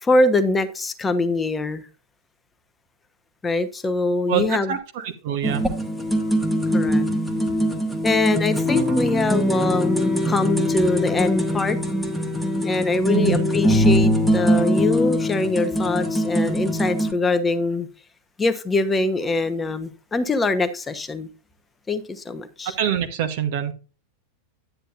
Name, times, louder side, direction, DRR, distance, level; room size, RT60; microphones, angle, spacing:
voice 1, 0.0-1.8 3.4-4.8 6.7-7.1 8.0-11.8 12.6-17.9 18.4-21.3 21.9-22.8, left 2 dB, 15° left, 10 dB, 1.0 m, -23 dB
voice 2, 4.3-5.6 13.1-13.4 22.8-23.7, right 9 dB, 50° right, 7 dB, 1.1 m, -25 dB
sound 1, 5.4-17.1, equal, ahead, 1.3 m, -22 dB
10.5 x 9.0 x 2.5 m, 0.33 s
figure-of-eight pair, 90°, 0 cm